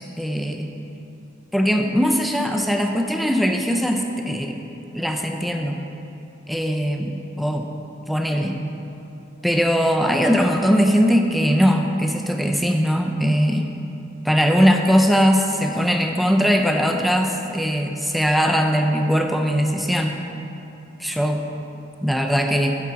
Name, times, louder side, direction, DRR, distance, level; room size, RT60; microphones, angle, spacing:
voice 1, 0.2-0.7 1.5-4.6 4.9-5.8 6.5-7.7 8.1-8.6 9.4-13.7 14.2-20.2 21.0-21.4 22.0-22.8, equal, ahead, 3 dB, 0.3 m, -20 dB
9.4 x 3.7 x 5.6 m, 2.9 s
head